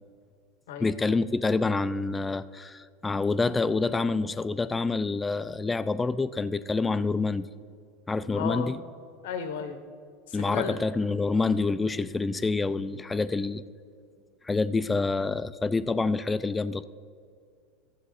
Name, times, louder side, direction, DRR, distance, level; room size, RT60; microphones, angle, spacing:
voice 1, 0.8-7.5 8.1-8.8 10.3-13.6 14.4-16.9, left 3 dB, 15° left, 15 dB, 0.4 m, -27 dB
voice 2, 8.3-8.7 9.2-9.8 10.3-10.8, left 6 dB, 70° left, 9 dB, 0.9 m, -33 dB
12.5 x 7.6 x 4.2 m, 2.2 s
hypercardioid pair, 85°, 0 cm